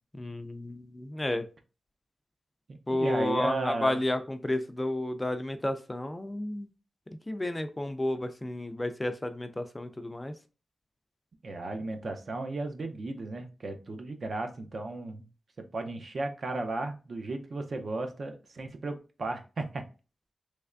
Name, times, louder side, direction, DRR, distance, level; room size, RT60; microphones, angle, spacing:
voice 1, 0.1-1.5 2.9-6.7 7.3-10.3, left 1 dB, 15° left, 9 dB, 0.3 m, -31 dB
voice 2, 2.7-4.0 11.4-15.3 15.6-19.8, right 2 dB, 55° right, 5 dB, 0.5 m, -35 dB
3.3 x 3.2 x 2.4 m, 0.34 s
wide cardioid pair, 120°, 0 cm